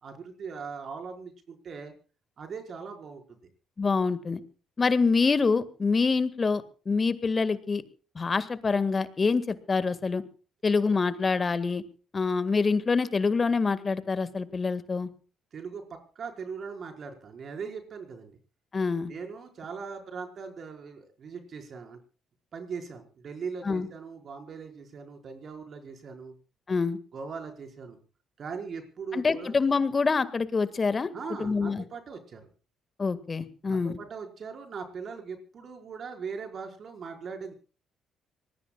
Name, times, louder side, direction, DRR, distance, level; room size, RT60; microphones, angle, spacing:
voice 1, 0.0-1.9 2.4-3.4 15.5-18.4 19.1-22.0 22.5-26.3 27.1-28.0 28.4-29.6 31.1-32.5 33.6-37.5, right 5 dB, 50° right, 4 dB, 4.9 m, -40 dB
voice 2, 3.8-4.4 4.8-7.8 8.2-10.2 10.6-11.8 12.1-15.1 18.7-19.1 23.6-23.9 26.7-27.0 29.1-31.1 31.4-31.8 33.0-34.0, left 4 dB, 35° left, 14 dB, 1.8 m, -26 dB
25.5 x 20.0 x 2.4 m, 0.39 s
hypercardioid pair, 45°, 0 cm